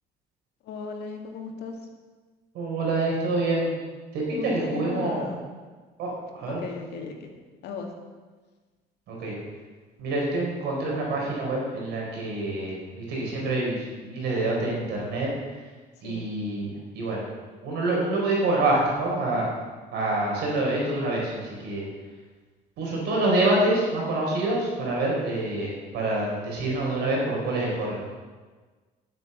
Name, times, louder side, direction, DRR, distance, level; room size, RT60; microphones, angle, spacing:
voice 1, 0.6-1.8 4.3-5.5 6.5-7.3 7.6-7.9 16.0-16.2, left 5 dB, 80° left, 2 dB, 2.1 m, -36 dB
voice 2, 2.5-3.7 4.1-5.3 6.0-6.6 9.1-9.3 10.0-15.3 16.0-17.2 17.6-19.5 19.9-21.8 22.8-28.0, right 2 dB, 85° right, -3 dB, 4.7 m, -26 dB
11.0 x 8.5 x 7.0 m, 1.4 s
cardioid pair, 110°, 17 cm